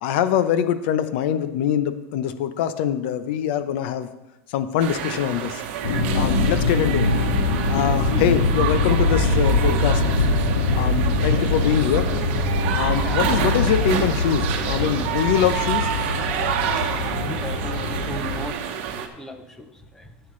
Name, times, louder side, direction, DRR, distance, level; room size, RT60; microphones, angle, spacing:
voice 1, 0.0-4.1 4.5-5.6 6.1-7.1 7.7-10.0 10.8-12.1 12.7-15.9, left 9 dB, 55° left, 11 dB, 0.7 m, -23 dB
sound 1, 4.8-19.1, right 8 dB, 55° right, 1.1 m, -28 dB
sound 2, 5.8-18.5, left 2 dB, 80° left, 1.9 m, -23 dB
voice 2, 17.2-18.6 19.2-20.1, left 1 dB, 5° left, 7 dB, 0.7 m, -36 dB
13.5 x 7.9 x 3.2 m, 1.0 s
supercardioid pair, 160°, 7 cm